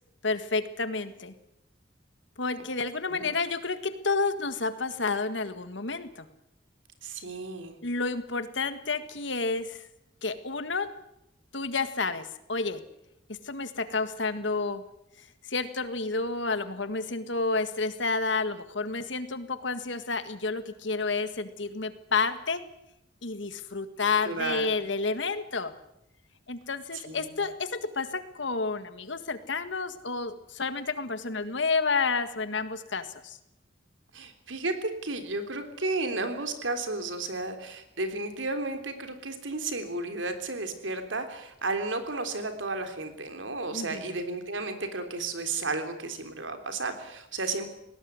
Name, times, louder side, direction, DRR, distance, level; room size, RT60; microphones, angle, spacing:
voice 1, 0.2-1.3 2.4-6.3 7.8-9.9 10.2-10.9 11.5-12.8 13.4-14.8 15.2-22.6 23.2-25.7 26.5-33.4 43.7-44.1, left 4 dB, 70° left, 11 dB, 1.8 m, -30 dB
voice 2, 7.0-7.8 24.2-24.7 26.9-27.3 34.1-47.7, right 3 dB, 90° right, 8 dB, 3.4 m, -33 dB
20.0 x 17.5 x 9.7 m, 0.84 s
head